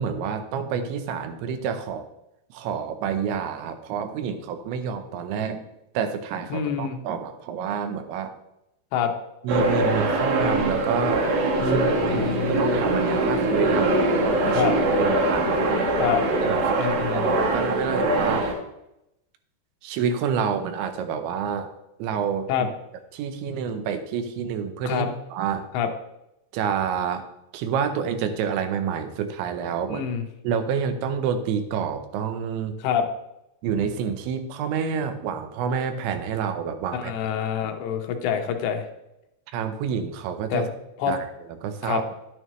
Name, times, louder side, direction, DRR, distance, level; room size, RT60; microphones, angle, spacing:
voice 1, 0.0-2.1 2.5-5.6 5.9-8.3 9.4-11.3 11.6-15.8 16.4-18.5 19.8-21.7 22.0-22.7 23.1-25.7 26.5-27.2 27.5-30.0 30.4-32.8 33.6-37.1 39.5-40.7 41.1-41.3 41.6-42.0, right 7 dB, 85° right, 8 dB, 3.2 m, -28 dB
voice 2, 6.5-7.0 8.9-9.1 11.6-12.8 14.5-14.7 16.0-16.2 16.8-17.3 22.5-22.7 24.8-25.1 25.7-25.9 29.9-30.3 32.8-33.1 36.9-38.9 40.5-40.6 41.0-41.1 41.8-42.0, left 8 dB, 80° left, 5 dB, 3.0 m, -26 dB
sound 1, 9.5-18.5, right 2 dB, 60° right, 3.1 m, -22 dB
11.0 x 9.8 x 3.1 m, 0.87 s
omnidirectional pair, 5.2 m